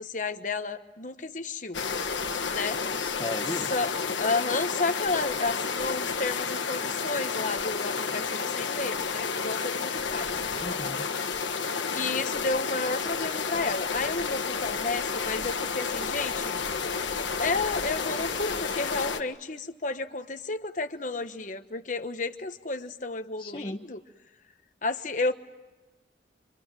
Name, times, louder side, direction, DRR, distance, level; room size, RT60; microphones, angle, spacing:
voice 1, 0.0-1.8 2.5-2.8 3.7-3.9 4.2-10.4 11.9-16.6 17.4-24.0 24.8-25.3, left 3 dB, 45° left, 8 dB, 1.2 m, -32 dB
sound 1, 1.7-19.2, left 5 dB, 90° left, 1.5 m, -31 dB
voice 2, 3.0-3.7 10.6-11.1 23.4-23.9, left 1 dB, 25° left, 2 dB, 0.9 m, -36 dB
26.5 x 26.0 x 7.6 m, 1.1 s
head